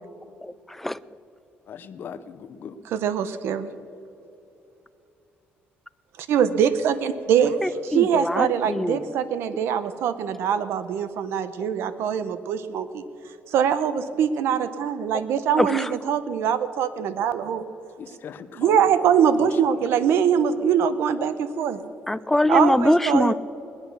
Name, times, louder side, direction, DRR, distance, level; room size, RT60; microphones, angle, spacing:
voice 1, 0.4-1.0 7.6-9.0 15.1-15.2 15.6-15.9 22.1-23.3, left 1 dB, 5° left, 16 dB, 0.3 m, -23 dB
voice 2, 1.7-2.8 7.7-7.8 18.0-20.1, left 7 dB, 55° left, 12 dB, 0.8 m, -40 dB
voice 3, 2.9-3.7 6.3-7.6 7.9-13.0 13.5-17.7 18.6-21.8 22.5-23.3, right 8 dB, 80° right, 13 dB, 0.8 m, -23 dB
19.0 x 10.5 x 6.7 m, 2.8 s
cardioid pair, 130°, 4 cm